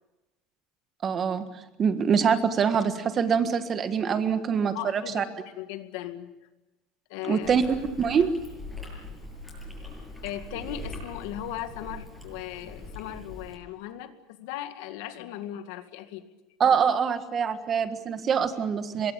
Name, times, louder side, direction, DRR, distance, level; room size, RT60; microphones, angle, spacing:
voice 1, 1.0-1.4 1.8-5.2 7.3-7.6 8.0-8.3 16.6-19.1, right 7 dB, 25° right, 10 dB, 1.6 m, -24 dB
voice 2, 4.7-6.3 7.1-7.5 10.2-16.3, left 12 dB, 75° left, 9 dB, 2.2 m, -37 dB
Chewing mastication, 7.4-13.5, left 1 dB, 5° left, 7.8 m, -41 dB
24.0 x 22.5 x 8.8 m, 1.0 s
cardioid pair, 165°, 0 cm